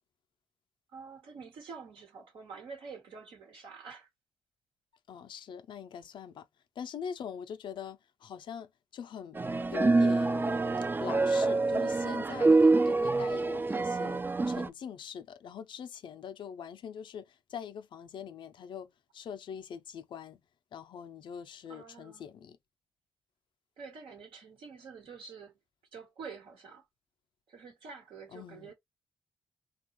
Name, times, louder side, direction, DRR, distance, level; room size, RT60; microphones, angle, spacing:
voice 1, 0.9-4.1 21.7-22.3 23.8-25.5 25.9-26.8 27.5-28.7, right 5 dB, 80° right, 1.1 m, -47 dB
voice 2, 5.1-6.5 6.8-9.4 9.7-10.5 11.0-20.4 20.7-22.6 28.3-28.7, left 7 dB, 70° left, 0.4 m, -43 dB
sound 1, 9.4-14.7, right 3 dB, 25° right, 0.3 m, -26 dB
2.9 x 2.3 x 2.9 m
supercardioid pair, 50°, 9 cm